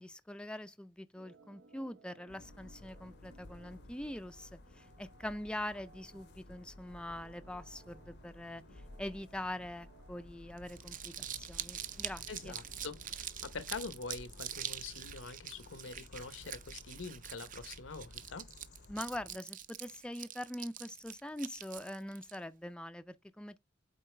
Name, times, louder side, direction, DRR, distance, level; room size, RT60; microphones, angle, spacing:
voice 1, 0.0-12.6 18.9-23.6, left 1 dB, 5° left, 0.4 m, -43 dB
Organ, 1.1-13.3, right 3 dB, 80° right, 0.7 m, -62 dB
sound 1, 2.3-19.4, left 2 dB, 60° left, 0.7 m, -55 dB
Crumpling crinkling, 10.6-22.4, right 10 dB, 45° right, 0.6 m, -44 dB
voice 2, 12.3-18.5, left 4 dB, 90° left, 0.9 m, -45 dB
8.4 x 3.9 x 3.3 m
head